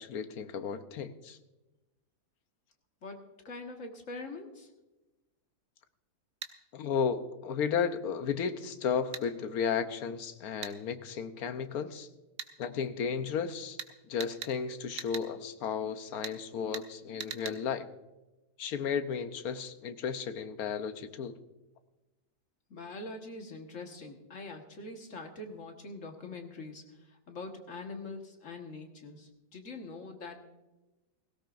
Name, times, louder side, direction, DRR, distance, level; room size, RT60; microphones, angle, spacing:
voice 1, 0.0-1.4 6.7-12.1 12.6-13.8 14.0-17.9 18.6-21.4, left 6 dB, 70° left, 10 dB, 1.3 m, -34 dB
voice 2, 3.0-4.7 22.7-26.8 27.3-30.4, left 3 dB, 50° left, 3 dB, 1.8 m, -43 dB
sound 1, 6.4-6.5 9.1-9.3 10.6-10.8 12.4-12.5 13.8-13.9 14.2-14.5 15.0-15.3 16.2-16.4 16.7-16.9 17.2-17.6, right 7 dB, 60° right, 1.2 m, -40 dB
17.0 x 17.0 x 2.6 m, 1.0 s
omnidirectional pair, 1.7 m